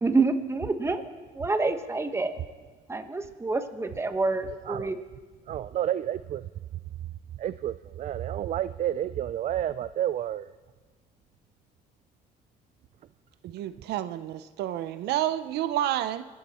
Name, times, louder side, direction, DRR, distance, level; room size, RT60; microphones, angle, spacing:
voice 1, 0.0-2.3 2.9-5.0, right 3 dB, 15° right, 1.2 m, -27 dB
voice 2, 4.7-5.0 5.5-6.4 7.4-10.5, right 11 dB, 45° right, 0.4 m, -30 dB
voice 3, 13.4-16.3, right 12 dB, 80° right, 0.7 m, -29 dB
26.0 x 12.5 x 4.3 m
cardioid pair, 110°, 17 cm